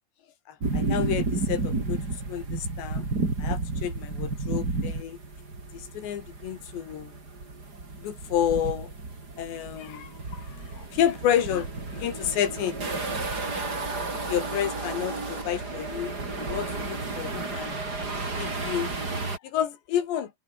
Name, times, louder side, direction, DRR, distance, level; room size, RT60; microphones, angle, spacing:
voice 1, 0.5-2.0 2.3-3.1 3.4-5.2 5.7-7.1 8.0-8.9 9.4-12.8 14.1-17.8 18.3-18.9 19.4-20.3, left 10 dB, 60° left, 4.6 m, -30 dB
sound 1, 0.6-19.4, right 3 dB, 20° right, 4.2 m, -32 dB
omnidirectional pair, 5.9 m